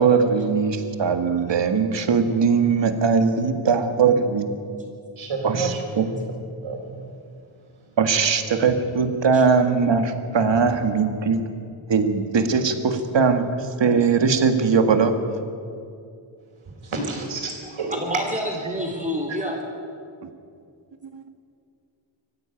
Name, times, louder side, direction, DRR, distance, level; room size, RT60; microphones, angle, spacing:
voice 1, 0.0-4.5 5.4-6.0 8.0-11.4 11.9-13.5 13.8-15.1, right 5 dB, 65° right, 7 dB, 2.0 m, -20 dB
voice 2, 5.2-6.2 6.6-6.8 10.5-10.6 16.8-17.9, right 3 dB, 85° right, 1 dB, 5.0 m, -29 dB
voice 3, 17.9-19.6, equal, 15° right, -1 dB, 3.8 m, -28 dB
24.5 x 15.0 x 9.2 m, 2.4 s
wide cardioid pair, 155°, 47 cm